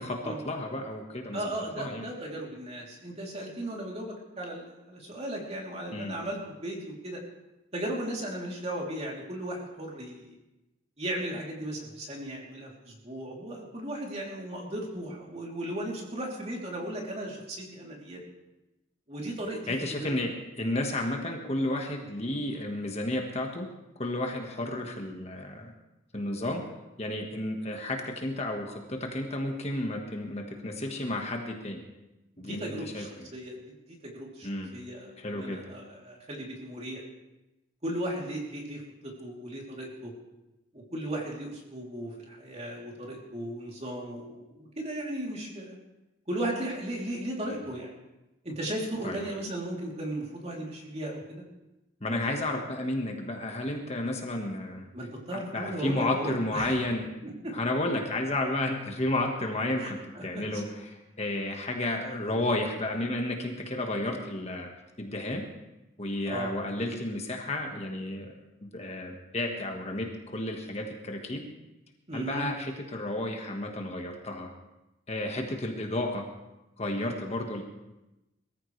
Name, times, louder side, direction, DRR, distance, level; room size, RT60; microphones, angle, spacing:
voice 1, 0.0-1.5 1.8-2.1 5.9-6.2 19.3-19.4 19.7-23.7 23.9-25.7 26.1-26.6 27.0-31.8 32.4-33.1 34.4-34.7 35.2-35.6 47.5-47.6 49.0-49.2 52.0-54.9 55.3-57.1 57.5-64.7 65.0-65.4 66.0-68.3 68.6-71.4 72.1-74.5 75.1-76.2 76.8-77.6, left 1 dB, 35° left, 2 dB, 1.5 m, -32 dB
voice 2, 1.3-7.2 7.7-10.3 11.0-18.2 19.1-20.2 32.4-37.0 37.8-40.1 40.7-45.8 46.3-48.0 48.4-51.4 54.9-56.7 57.2-57.5 59.8-60.6 66.2-66.5 72.1-72.5, right 1 dB, 35° right, -2 dB, 3.2 m, -36 dB
22.0 x 14.5 x 3.3 m, 0.97 s
head